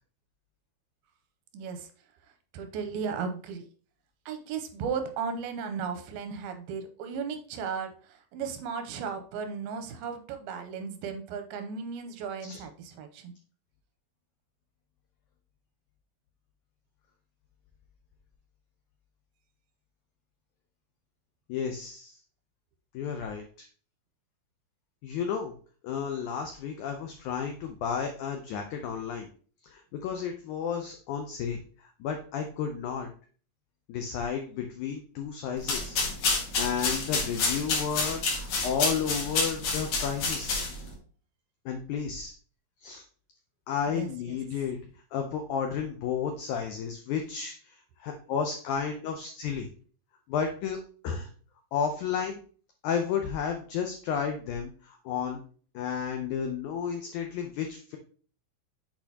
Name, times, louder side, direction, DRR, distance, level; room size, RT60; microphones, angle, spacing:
voice 1, 1.5-1.9 2.5-3.6 4.3-13.3 43.9-44.4, right 6 dB, 85° right, 7 dB, 2.5 m, -35 dB
voice 2, 21.5-22.2 22.9-23.7 25.0-25.5 25.8-29.3 29.7-33.1 33.9-36.0 36.6-40.6 41.7-42.3 42.8-43.0 43.7-44.8 45.1-49.7 50.3-50.8 51.0-51.3 51.7-52.4 52.8-55.4 55.7-58.0, left 7 dB, 85° left, 4 dB, 1.7 m, -32 dB
sound 1, 35.6-40.9, left 3 dB, 60° left, 2.3 m, -29 dB
8.1 x 4.4 x 2.8 m, 0.42 s
omnidirectional pair, 4.3 m